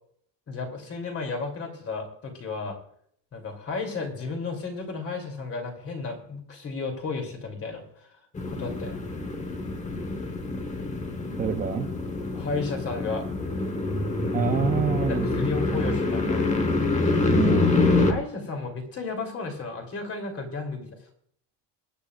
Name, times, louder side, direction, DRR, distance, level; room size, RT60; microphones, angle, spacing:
voice 1, 0.5-2.8 3.3-8.1 8.5-9.0 12.3-13.2 15.0-16.5 18.0-21.0, left 4 dB, 30° left, 3 dB, 3.0 m, -33 dB
sound 1, 8.4-18.1, left 3 dB, 15° left, 1.1 m, -26 dB
voice 2, 11.4-11.9 14.3-15.3 17.3-17.8, right 7 dB, 20° right, 5 dB, 0.4 m, -27 dB
22.5 x 10.0 x 2.4 m, 0.65 s
cardioid pair, 175°, 44 cm